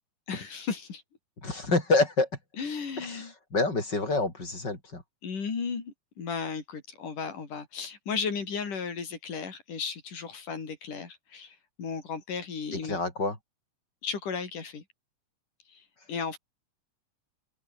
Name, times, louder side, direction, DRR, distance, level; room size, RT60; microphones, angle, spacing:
voice 1, 0.3-1.0 2.6-3.3 5.2-13.0 14.0-14.8 15.7-16.4, left 5 dB, 85° left, 6.1 m, -35 dB
voice 2, 1.4-2.3 3.0-5.0 12.7-13.4, left 3 dB, 30° left, 6.4 m, -27 dB
open air
omnidirectional pair, 3.6 m